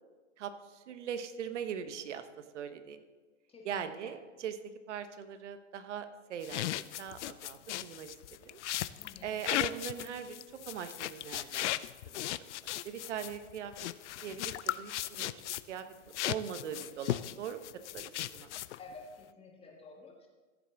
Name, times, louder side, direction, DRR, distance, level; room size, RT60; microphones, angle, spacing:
voice 1, 0.4-2.3 2.5-3.0 3.6-4.6 4.9-6.7 7.0-8.2 8.4-8.6 9.2-11.7 12.1-12.3 12.8-13.7 14.2-15.4 15.7-15.8 16.2-17.7 17.9-18.5, right 8 dB, 65° right, 10 dB, 1.1 m, -41 dB
voice 2, 3.5-4.1 9.0-9.4 18.8-20.3, left 3 dB, 15° left, 1 dB, 1.8 m, -51 dB
sound 1, 6.4-15.8 16.1-18.9, left 14 dB, 65° left, 0.5 m, -37 dB
14.5 x 7.0 x 3.9 m, 1.3 s
hypercardioid pair, 125°, 38 cm